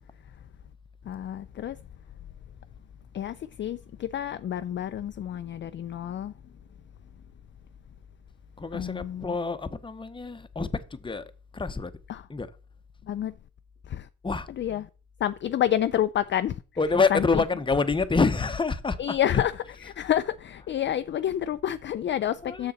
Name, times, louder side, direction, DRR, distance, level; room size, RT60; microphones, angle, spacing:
voice 1, 1.0-1.8 3.1-6.3 8.7-9.4 12.1-12.3 13.0-13.4 13.8-14.1 14.6-14.9 15.2-16.6 17.1-17.4 19.0-22.7, left 11 dB, 40° left, 0.4 m, -29 dB
voice 2, 8.6-11.9 12.3-12.5 14.2-14.5 16.8-19.9 22.4-22.7, left 4 dB, 15° left, 0.8 m, -27 dB
6.8 x 6.5 x 4.2 m
cardioid pair, 90°, 30 cm